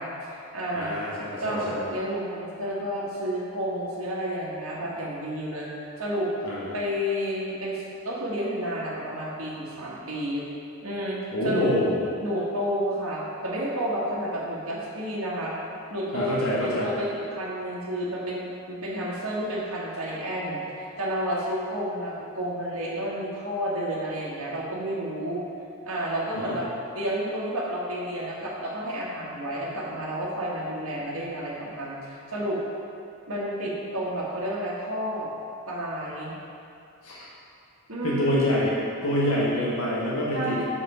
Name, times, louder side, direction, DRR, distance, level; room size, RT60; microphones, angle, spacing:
voice 1, 0.0-1.0 1.4-6.3 6.7-10.4 10.8-11.7 12.2-15.5 15.9-25.4 25.8-26.7 26.9-32.6 33.3-35.4 35.7-36.3 37.9-38.6 40.3-40.7, equal, 80° right, -6 dB, 1.5 m, -31 dB
voice 2, 0.7-1.9 6.4-6.7 11.3-12.0 16.1-16.9 26.3-26.6 37.0-37.2 38.0-38.7 39.0-40.7, left 1 dB, 90° left, -7 dB, 1.4 m, -26 dB
6.1 x 5.0 x 5.6 m, 2.5 s
head